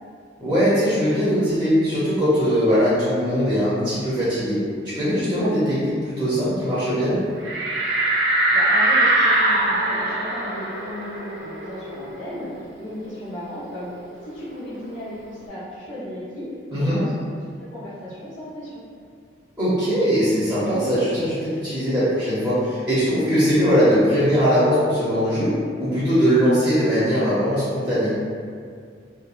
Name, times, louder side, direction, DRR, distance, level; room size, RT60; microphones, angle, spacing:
voice 1, 0.4-4.6 4.9-7.2 16.7-17.0 19.6-25.5 25.8-28.1, equal, 10° right, -12 dB, 0.6 m, -20 dB
sound 1, 7.4-12.6 13.0-13.1 13.4-15.1, right 2 dB, 75° right, 0.4 m, -22 dB
voice 2, 8.5-13.9 14.2-17.1 17.6-18.8, left 1 dB, 85° left, -11 dB, 0.8 m, -35 dB
2.7 x 2.3 x 2.4 m, 2.2 s
head